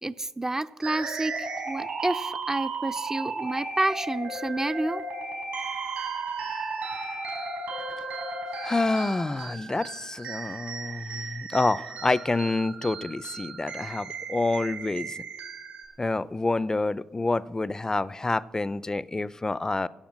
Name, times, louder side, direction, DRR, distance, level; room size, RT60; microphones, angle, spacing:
voice 1, 0.0-5.0, right 2 dB, 20° right, 10 dB, 0.5 m, -29 dB
sound 1, 0.8-15.8, right 3 dB, 75° right, 5.0 m, -35 dB
voice 2, 8.6-15.2 16.0-19.9, left 2 dB, 25° left, 19 dB, 0.5 m, -28 dB
16.0 x 7.2 x 7.5 m, 1.3 s
hypercardioid pair, 40°, 2 cm